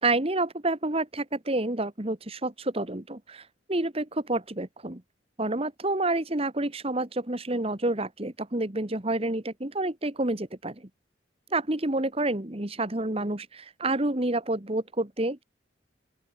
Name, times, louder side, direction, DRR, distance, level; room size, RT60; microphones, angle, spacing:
voice 1, 0.0-5.0 5.4-10.9 11.5-15.4, right 2 dB, 30° right, 1.5 m, -29 dB
open air
head